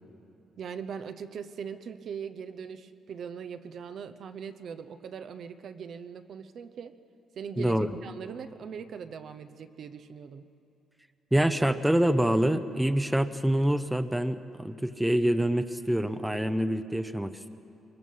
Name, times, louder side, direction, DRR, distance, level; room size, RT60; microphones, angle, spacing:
voice 1, 0.6-6.9 7.4-10.5, right 7 dB, 60° right, 9 dB, 0.8 m, -40 dB
voice 2, 7.6-7.9 11.3-17.5, right 1 dB, 5° right, 10 dB, 0.8 m, -26 dB
23.0 x 21.5 x 5.5 m, 2.7 s
cardioid pair, 90°, 0 cm